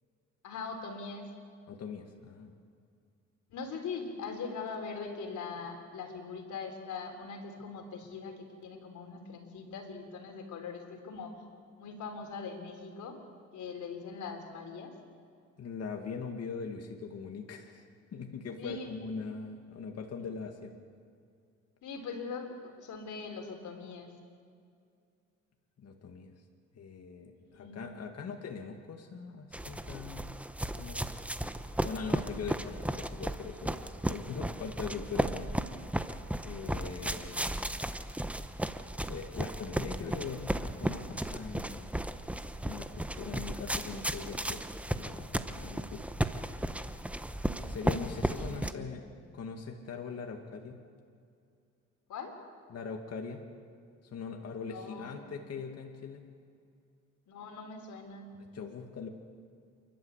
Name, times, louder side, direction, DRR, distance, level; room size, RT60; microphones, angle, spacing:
voice 1, 0.4-1.3 3.5-11.3 11.8-13.2 13.5-14.9 18.6-18.9 21.8-24.2 27.4-28.1 48.3-49.1 52.1-52.4 54.7-55.2 57.3-58.3, left 4 dB, 75° left, 4 dB, 3.8 m, -41 dB
voice 2, 1.7-2.5 15.6-17.8 18.1-20.8 25.8-26.3 26.7-30.3 30.8-31.1 31.4-33.8 34.1-35.5 36.4-37.7 39.1-42.0 42.6-44.6 44.9-46.1 47.6-49.0 49.3-50.8 52.7-53.4 54.1-56.2 58.3-59.1, left 5 dB, 55° left, 3 dB, 2.2 m, -41 dB
sound 1, 29.5-48.7, right 1 dB, 5° right, 0.9 m, -35 dB
28.5 x 12.0 x 8.3 m, 2.4 s
cardioid pair, 90°, 30 cm